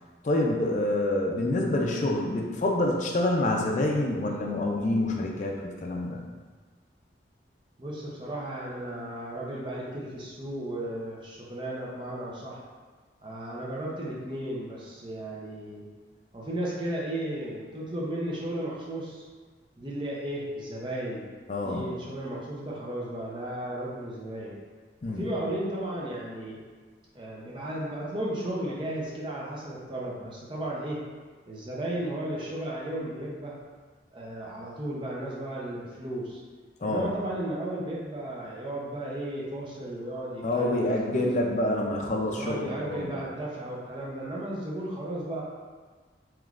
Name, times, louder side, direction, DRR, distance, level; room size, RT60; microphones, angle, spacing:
voice 1, 0.2-6.2 21.5-21.9 25.0-25.3 36.8-37.1 40.4-43.2, left 1 dB, 40° left, -1 dB, 0.4 m, -27 dB
voice 2, 7.8-12.6 13.2-15.8 16.3-19.2 19.8-21.2 21.6-24.5 25.1-26.6 27.1-31.0 31.5-33.5 34.1-36.4 36.8-41.3 42.3-45.4, right 1 dB, 25° right, -5 dB, 0.6 m, -34 dB
3.5 x 3.0 x 2.4 m, 1.4 s
head